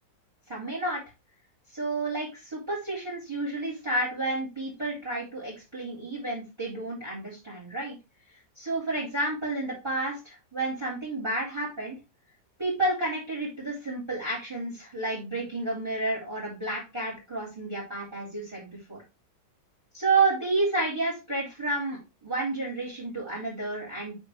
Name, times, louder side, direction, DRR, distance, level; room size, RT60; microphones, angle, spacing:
voice 1, 0.5-1.0 1.7-8.0 8.6-12.0 12.6-19.0 19.9-24.1, right 2 dB, 15° right, -8 dB, 4.3 m, -30 dB
8.4 x 4.6 x 3.4 m, 0.26 s
omnidirectional pair, 2.1 m